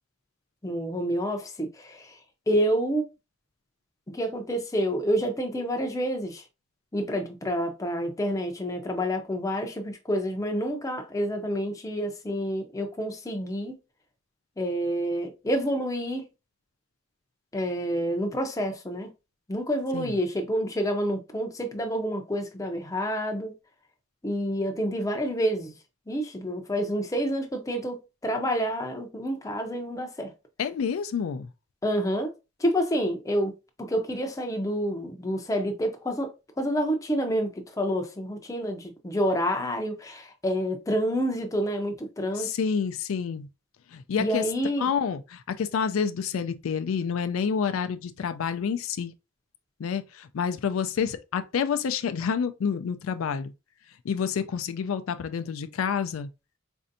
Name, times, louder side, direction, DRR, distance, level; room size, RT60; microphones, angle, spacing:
voice 1, 0.6-2.2 2.5-3.1 4.1-6.4 6.9-13.8 14.6-16.2 17.5-19.1 19.5-23.5 24.2-25.7 26.1-30.3 31.8-32.3 32.6-33.5 33.8-42.5 44.2-44.9, equal, 15° left, 0.5 m, -28 dB
voice 2, 30.6-31.5 42.4-43.5 43.9-44.4 44.8-49.1 49.8-53.5 54.0-56.3, left 6 dB, 80° left, 0.4 m, -28 dB
4.2 x 2.6 x 2.6 m
head